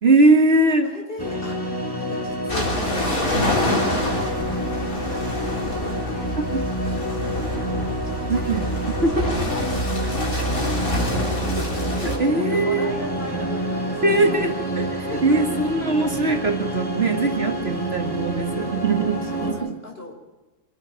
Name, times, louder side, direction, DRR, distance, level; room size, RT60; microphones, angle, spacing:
voice 1, 0.0-0.9 3.3-3.6 6.4-6.7 8.3-8.7 9.0-9.3 11.6-12.9 14.0-19.8, right 2 dB, 45° right, 4 dB, 1.9 m, -21 dB
voice 2, 0.8-1.6 2.0-8.4 9.2-11.8 12.4-14.3 15.1-15.7 19.2-20.2, left 2 dB, 40° left, 2 dB, 5.1 m, -37 dB
sound 1, 1.2-19.5, right 1 dB, 15° left, 4.8 m, -28 dB
sound 2, 2.5-12.2, equal, 85° left, 4.2 m, -26 dB
25.5 x 11.5 x 9.1 m, 1.1 s
omnidirectional pair, 1.4 m